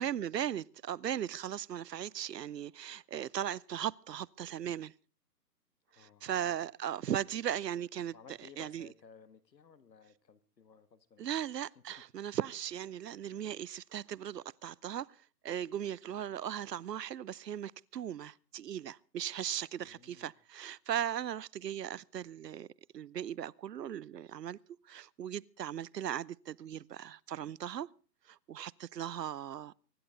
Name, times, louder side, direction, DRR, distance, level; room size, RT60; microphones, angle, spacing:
voice 1, 0.0-4.9 6.0-8.2 8.6-8.9 11.2-15.1 15.4-22.7 22.9-24.6 24.9-27.9 28.3-29.7, right 10 dB, 80° right, 0.7 m, -38 dB
voice 2, 5.9-6.6 8.1-11.4 11.8-11.9 19.8-20.3, left 6 dB, 85° left, 1.8 m, -58 dB
24.5 x 11.5 x 3.8 m
hypercardioid pair, 180°, 49 cm